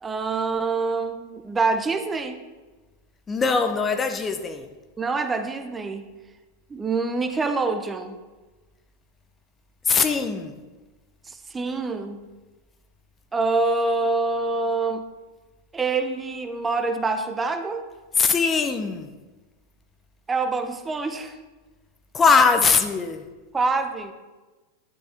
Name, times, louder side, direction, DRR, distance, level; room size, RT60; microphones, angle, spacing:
voice 1, 0.0-2.4 5.0-6.0 6.7-8.1 11.3-12.2 13.3-15.1 15.7-17.8 20.3-21.4 23.5-24.1, right 3 dB, 15° right, 0.7 m, -25 dB
voice 2, 3.3-4.7 9.9-10.5 18.2-19.1 22.1-23.2, left 5 dB, 20° left, 0.7 m, -21 dB
11.5 x 9.1 x 3.5 m
figure-of-eight pair, 90°, 0 cm